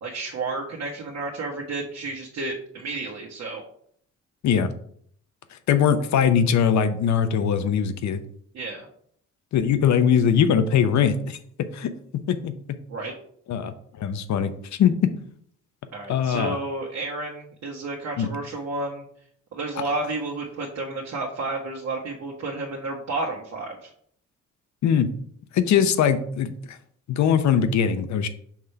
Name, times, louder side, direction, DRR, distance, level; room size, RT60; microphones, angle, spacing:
voice 1, 0.0-3.6 8.5-8.9 12.9-13.1 15.9-19.0 19.5-23.9, right 3 dB, 60° right, -2 dB, 1.2 m, -31 dB
voice 2, 5.7-8.2 9.5-11.4 11.7-11.9 12.3-12.5 13.5-14.5 14.8-14.9 16.1-16.6 18.2-18.3 24.8-25.1 25.5-26.8 27.1-28.3, left 8 dB, 65° left, 11 dB, 0.7 m, -21 dB
5.8 x 3.3 x 5.6 m, 0.64 s
cardioid pair, 90°, 30 cm